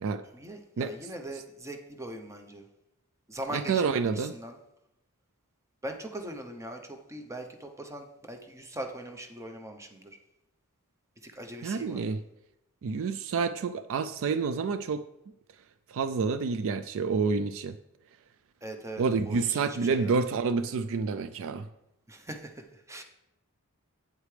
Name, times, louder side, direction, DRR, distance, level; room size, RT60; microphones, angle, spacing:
voice 1, 0.3-2.7 3.3-4.6 5.8-10.2 11.2-12.2 18.6-20.2 22.1-23.0, right 1 dB, 15° right, 5 dB, 0.7 m, -41 dB
voice 2, 3.5-4.3 11.6-12.2 12.8-15.0 15.9-17.7 19.0-21.7, right 5 dB, 65° right, 12 dB, 0.4 m, -28 dB
8.5 x 8.1 x 3.3 m, 0.86 s
head